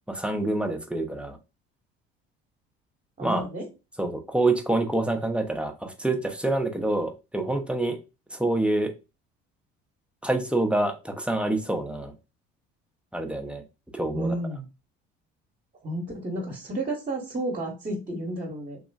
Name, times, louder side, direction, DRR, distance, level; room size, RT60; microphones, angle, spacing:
voice 1, 0.1-1.4 3.2-3.5 4.0-8.0 8.3-8.9 10.2-12.1 13.1-13.6 13.9-14.4, right 2 dB, 5° right, 5 dB, 0.6 m, -26 dB
voice 2, 3.2-3.7 14.1-14.7 15.8-18.8, right 1 dB, 25° right, 0 dB, 1.0 m, -31 dB
3.0 x 2.4 x 2.3 m, 0.28 s
hypercardioid pair, 70°, 30 cm